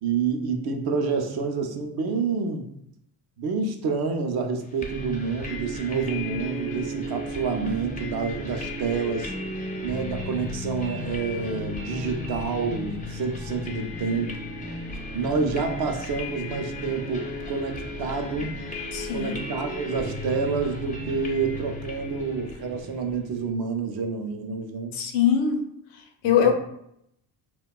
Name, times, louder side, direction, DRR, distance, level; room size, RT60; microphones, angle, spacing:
voice 1, 0.0-2.7 3.4-9.3 9.8-14.3 15.1-18.6 19.1-25.0 26.4-26.5, right 5 dB, 55° right, 5 dB, 0.5 m, -28 dB
sound 1, 4.8-23.5, left 1 dB, 20° left, 0.4 m, -35 dB
voice 2, 18.9-19.3 24.9-25.6 26.2-26.5, left 8 dB, 80° left, 4 dB, 0.6 m, -21 dB
2.8 x 2.2 x 2.2 m, 0.75 s
cardioid pair, 80°, 46 cm